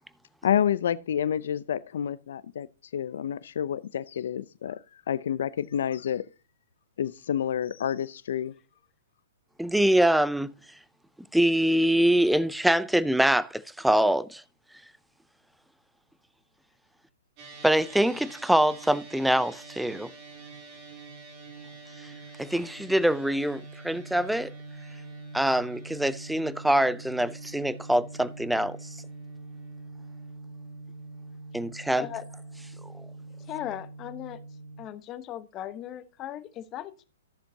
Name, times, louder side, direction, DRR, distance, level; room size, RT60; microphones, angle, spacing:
voice 1, 0.4-2.7 2.9-6.2 7.0-8.5, left 9 dB, 70° left, 0.5 m, -29 dB
voice 2, 9.6-10.5 11.3-14.4 17.6-20.1 22.0-22.1 22.4-24.5 25.3-29.0 31.5-32.1, right 1 dB, ahead, 0.5 m, -24 dB
sound 1, 17.4-34.8, right 3 dB, 40° right, 2.8 m, -44 dB
voice 3, 33.5-34.4 34.8-37.0, left 12 dB, 30° left, 1.1 m, -38 dB
14.0 x 7.0 x 2.8 m
hypercardioid pair, 130°, 0 cm